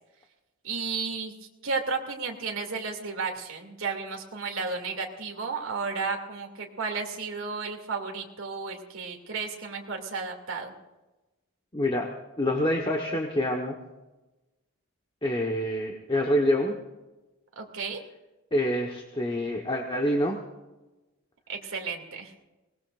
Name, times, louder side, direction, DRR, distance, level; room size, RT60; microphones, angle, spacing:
voice 1, 0.6-1.3 1.6-10.7 17.6-18.0 21.5-22.3, right 4 dB, 70° right, 1 dB, 2.7 m, -33 dB
voice 2, 11.7-12.1 12.4-13.7 15.2-16.7 18.5-20.4, left 1 dB, 25° left, 0 dB, 1.3 m, -26 dB
23.0 x 19.5 x 2.6 m, 1.1 s
head